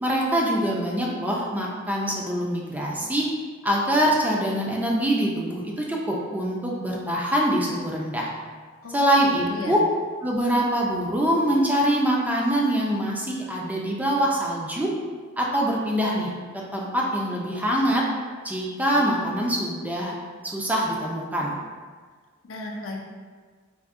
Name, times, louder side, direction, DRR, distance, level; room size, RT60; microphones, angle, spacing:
voice 1, 0.0-3.3 3.6-8.3 8.9-9.8 10.2-14.9 15.4-16.3 16.7-18.1 18.4-20.2 20.5-21.5, equal, 10° right, -3 dB, 0.3 m, -24 dB
voice 2, 8.8-9.8 22.4-23.0, left 2 dB, 70° left, 0 dB, 0.5 m, -35 dB
3.5 x 2.6 x 2.4 m, 1.5 s
head